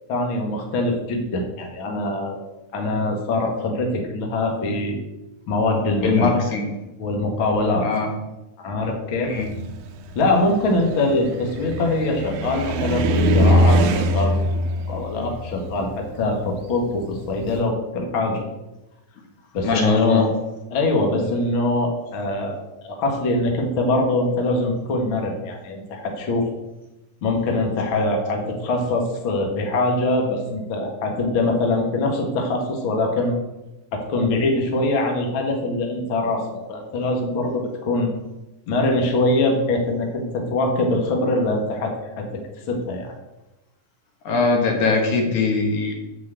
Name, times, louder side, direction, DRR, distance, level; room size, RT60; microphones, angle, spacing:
voice 1, 0.1-2.4 2.7-5.0 5.5-6.5 7.0-7.9 8.6-9.3 10.2-14.6 14.9-18.4 19.5-20.3 20.7-26.5 27.2-33.3 33.9-38.1 38.7-42.4 42.7-43.1, left 2 dB, 45° left, 1 dB, 1.9 m, -23 dB
voice 2, 6.0-6.7 7.8-8.1 9.2-9.5 19.6-20.2 44.3-45.9, left 4 dB, 65° left, 1 dB, 2.9 m, -21 dB
Car, 9.4-17.6, equal, 75° right, 2.1 m, -22 dB
8.1 x 6.3 x 7.9 m, 1.0 s
omnidirectional pair, 3.9 m